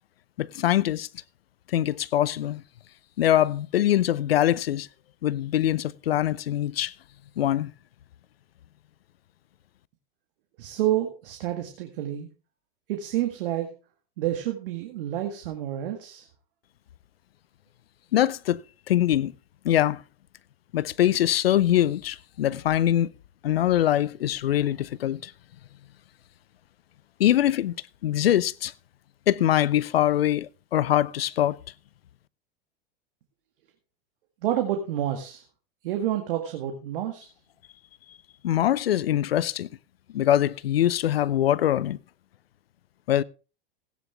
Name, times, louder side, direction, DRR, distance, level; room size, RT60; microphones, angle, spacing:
voice 1, 0.4-1.1 1.7-2.6 3.2-4.9 5.2-6.9 7.4-7.7 18.1-18.6 18.9-19.3 19.6-20.0 20.7-23.1 23.4-25.3 27.2-27.7 28.0-28.7 29.3-31.6 38.4-39.7 40.1-42.0 43.1-43.2, left 12 dB, 90° left, 0.6 m, -23 dB
voice 2, 10.6-12.3 12.9-13.7 14.2-16.3 34.4-35.4 35.8-37.3, right 12 dB, 70° right, 2.0 m, -29 dB
16.0 x 9.5 x 3.5 m
hypercardioid pair, 100°, 29 cm